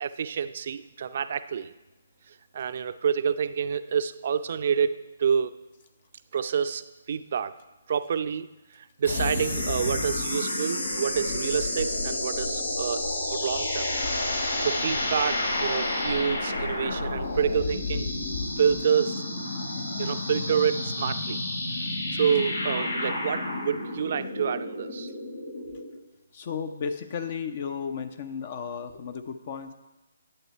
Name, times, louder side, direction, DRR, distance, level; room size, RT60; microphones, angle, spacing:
voice 1, 0.0-1.7 2.3-5.5 6.3-7.6 7.9-8.5 8.7-13.9 14.6-18.2 18.6-19.2 20.0-21.4 22.1-25.1, right 7 dB, 50° right, 12 dB, 0.5 m, -28 dB
sound 1, 9.0-25.9, left 2 dB, 85° left, 2.5 m, -30 dB
voice 2, 26.3-29.7, left 6 dB, 45° left, 9 dB, 0.7 m, -34 dB
11.0 x 7.9 x 4.5 m, 1.1 s
figure-of-eight pair, 145°, 0 cm